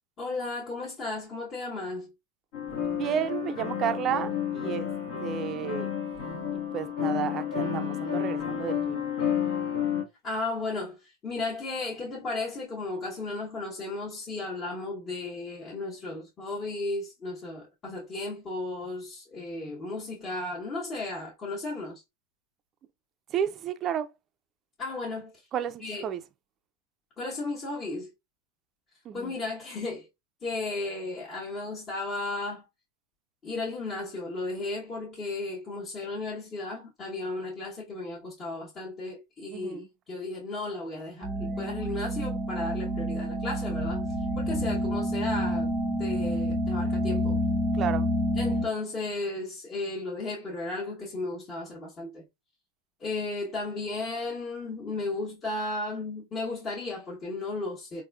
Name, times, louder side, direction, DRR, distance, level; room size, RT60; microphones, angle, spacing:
voice 1, 0.2-2.1 10.2-22.0 24.8-25.4 25.8-26.1 27.2-28.1 29.1-30.1 30.4-32.6 33.4-44.0 44.4-45.7 46.0-47.4 48.3-52.2 53.0-58.0, left 2 dB, 30° left, 1.0 m, -34 dB
sound 1, 2.5-10.0, left 8 dB, 65° left, 1.1 m, -31 dB
voice 2, 2.9-4.9 5.2-5.9 6.5-9.1 23.3-24.1 25.5-26.2 29.1-29.3 39.5-39.9 47.7-48.1, right 9 dB, 35° right, 0.3 m, -32 dB
sound 2, 41.2-48.7, equal, 5° right, 0.6 m, -28 dB
3.5 x 2.5 x 2.2 m
hypercardioid pair, 115°, 0 cm